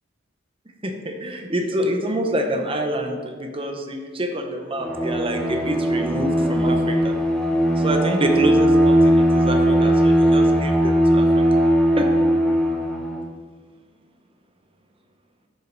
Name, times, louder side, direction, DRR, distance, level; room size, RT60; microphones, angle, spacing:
voice 1, 0.8-7.1 7.8-11.4 12.0-12.1, right 1 dB, 30° right, 4 dB, 1.0 m, -26 dB
Bowed string instrument, 4.8-13.3, equal, 5° left, 0.8 m, -19 dB
10.5 x 6.3 x 4.1 m, 1.5 s
head